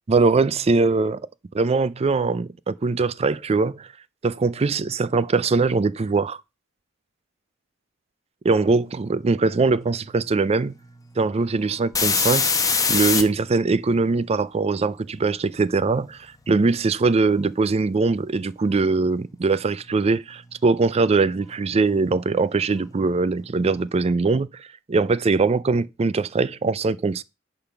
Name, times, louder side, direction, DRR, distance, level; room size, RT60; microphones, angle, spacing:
voice 1, 0.1-1.2 1.5-3.9 4.2-6.4 8.4-10.7 11.2-12.5 12.9-27.2, right 3 dB, 30° right, 0.4 m, -22 dB
sound 1, 10.8-10.9 11.3-13.2 21.6-21.7 22.1-23.7, left 5 dB, 15° left, 1.0 m, -23 dB
10.0 x 3.8 x 5.9 m
head